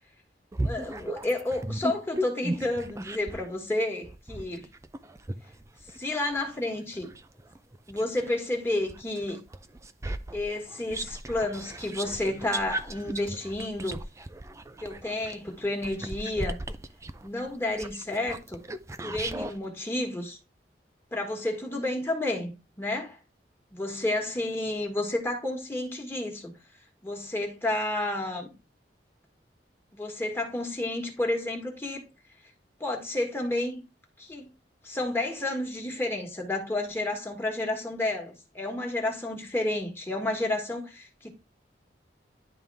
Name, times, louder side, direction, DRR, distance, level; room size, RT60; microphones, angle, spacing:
sound 1, 0.5-3.5 4.0-8.4 8.9-19.6, right 1 dB, 15° right, 0.4 m, -36 dB
voice 1, 0.6-4.7 6.0-7.1 7.9-9.4 10.3-14.0 14.8-16.6 17.2-18.6 19.0-20.4 21.1-23.2 23.7-26.5 27.0-28.5 29.9-32.0 32.8-33.8 34.2-34.5 34.8-41.3, left 2 dB, 15° left, 1.6 m, -31 dB
11.0 x 3.6 x 3.4 m
head